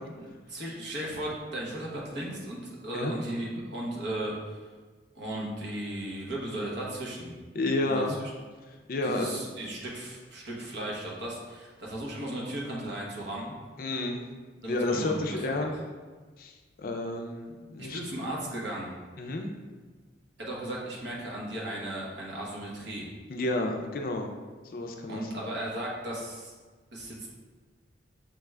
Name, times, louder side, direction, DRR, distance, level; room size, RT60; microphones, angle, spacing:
voice 1, 0.2-4.6 5.1-7.3 7.8-8.0 9.0-13.6 14.6-15.7 17.8-18.9 20.4-23.1 25.1-26.5 26.9-27.3, right 1 dB, 65° right, -4 dB, 1.0 m, -36 dB
voice 2, 7.5-8.2 8.9-9.4 13.8-14.3 14.6-15.7 16.4-16.5 16.8-18.0 19.2-19.5 23.3-24.3 24.6-25.3, left 2 dB, 50° left, 3 dB, 0.4 m, -30 dB
5.8 x 2.3 x 3.2 m, 1.4 s
head